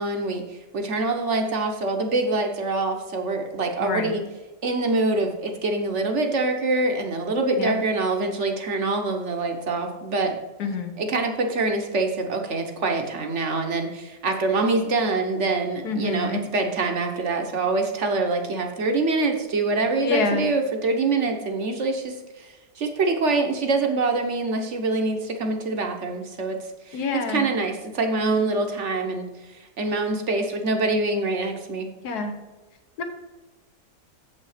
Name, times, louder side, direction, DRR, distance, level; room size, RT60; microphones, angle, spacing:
voice 1, 0.0-4.2 4.6-10.4 11.0-26.6 26.8-31.9, right 3 dB, 50° right, 4 dB, 1.1 m, -25 dB
voice 2, 3.8-4.2 7.6-7.7 10.6-10.9 15.8-16.4 20.0-20.5 26.9-27.5 32.0-32.3 33.0-33.1, left 4 dB, 65° left, 6 dB, 1.5 m, -26 dB
7.5 x 5.5 x 4.9 m, 1.1 s
omnidirectional pair, 1.8 m